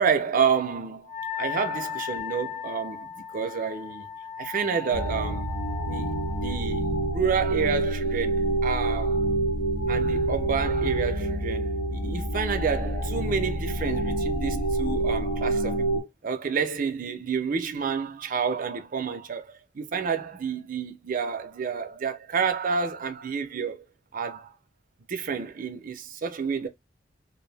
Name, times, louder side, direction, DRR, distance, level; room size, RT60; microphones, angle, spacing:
voice 1, 0.0-4.1 4.4-5.6 5.9-9.2 9.9-23.8 24.1-24.5 25.1-26.7, right 6 dB, 45° right, 0.4 m, -29 dB
Wind instrument woodwind instrument, 1.1-6.6, left 8 dB, 40° left, 0.5 m, -36 dB
sound 1, 4.9-16.0, right 2 dB, 70° left, 0.8 m, -27 dB
2.5 x 2.0 x 3.2 m
head